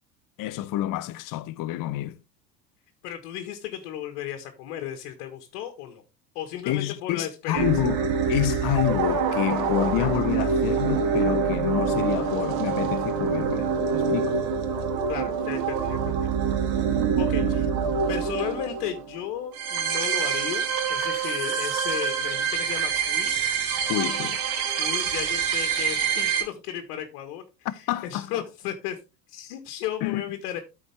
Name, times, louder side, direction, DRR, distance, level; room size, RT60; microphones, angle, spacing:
voice 1, 0.4-2.2 6.7-8.0 8.3-14.4 17.4-17.5 23.9-24.4 27.6-28.3 30.0-30.2, left 14 dB, 40° left, 0.8 m, -28 dB
voice 2, 3.0-6.0 6.4-7.7 15.1-16.3 17.2-17.7 18.1-23.3 24.8-29.0 29.3-30.6, left 10 dB, 60° left, 1.6 m, -34 dB
sound 1, 7.5-26.4, right 6 dB, 50° right, 2.2 m, -26 dB
13.5 x 4.8 x 3.5 m
hypercardioid pair, 75°, 48 cm